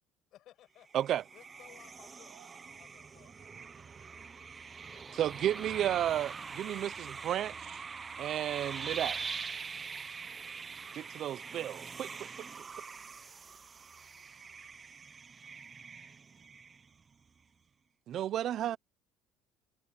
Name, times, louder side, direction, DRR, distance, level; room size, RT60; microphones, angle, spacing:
voice 1, 0.3-1.1 1.3-2.3 2.8-3.3 4.9-5.7 6.6-7.2 8.4-8.9 9.1-9.4 9.7-10.0 12.9-13.7, left 13 dB, 60° left, 5.8 m, -61 dB
sound 1, 0.9-17.1, right 5 dB, 25° right, 1.0 m, -44 dB
voice 2, 2.2-4.2, right 37 dB, 90° right, 7.5 m, -65 dB
voice 3, 5.2-7.8 8.2-9.2 10.9-12.5 18.1-18.8, right 11 dB, 55° right, 0.6 m, -33 dB
cardioid pair, 110°, 0 cm